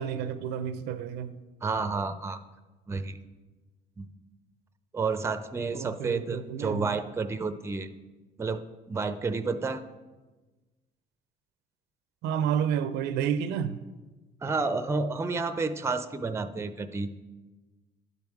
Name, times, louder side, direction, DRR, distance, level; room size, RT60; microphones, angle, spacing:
voice 1, 0.0-1.4 5.7-7.0 12.2-13.8, right 8 dB, 90° right, 0.5 m, -30 dB
voice 2, 1.6-2.4 2.9-3.2 4.0-4.1 4.9-7.9 8.4-8.6 8.9-9.8 14.4-17.1, right 4 dB, 15° right, 0.5 m, -30 dB
11.5 x 5.3 x 4.6 m
cardioid pair, 110°, 17 cm